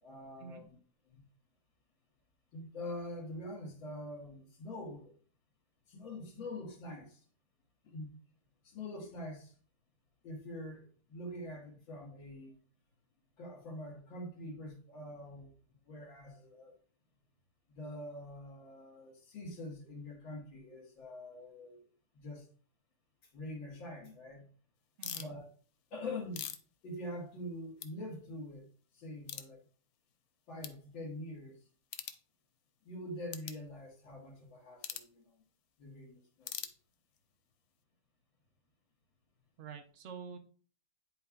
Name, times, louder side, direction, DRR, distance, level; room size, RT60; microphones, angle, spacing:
voice 1, 0.0-0.8 1.1-1.2 2.5-5.1 5.9-7.2 7.8-8.1 8.6-9.5 10.2-12.5 13.4-15.5 15.9-16.7 17.7-21.8 22.1-22.5 23.3-24.5 25.1-25.4 25.9-26.5 26.8-28.7 28.9-29.6 30.5-31.6 32.8-35.4 35.8-36.5, left 1 dB, 90° left, 2.4 m, -45 dB
sound 1, 25.0-25.3 26.0-27.5 27.8-27.9 28.4-28.5 29.2-29.5 30.1-30.2 30.6-30.8 31.8-32.2 33.3-33.6 34.8-35.1 36.4-37.2, left 11 dB, 70° left, 1.1 m, -43 dB
voice 2, 25.0-25.3 39.6-40.4, right 6 dB, 55° right, 0.8 m, -47 dB
10.5 x 4.4 x 2.4 m
omnidirectional pair, 2.0 m